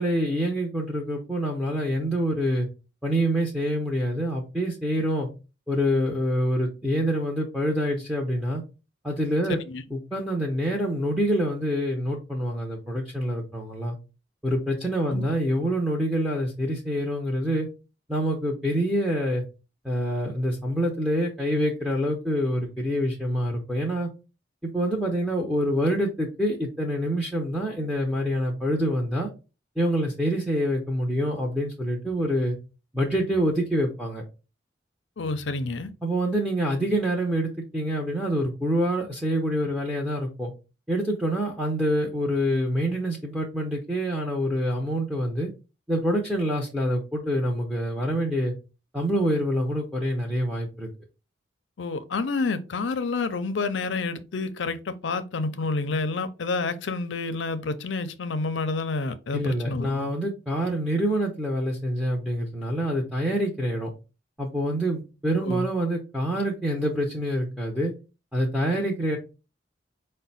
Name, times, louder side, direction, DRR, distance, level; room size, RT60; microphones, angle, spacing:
voice 1, 0.0-2.7 3.0-5.3 5.7-8.6 9.0-9.6 9.9-14.0 14.4-17.7 18.1-19.4 19.8-24.1 24.6-29.3 29.8-32.6 32.9-34.2 36.0-40.5 40.9-45.5 45.9-48.5 48.9-50.9 59.3-63.9 64.4-67.9 68.3-69.2, equal, 5° right, 0.7 m, -26 dB
voice 2, 35.2-35.9 51.8-60.1 65.4-65.7, left 3 dB, 70° left, 0.5 m, -29 dB
5.1 x 2.2 x 4.0 m
head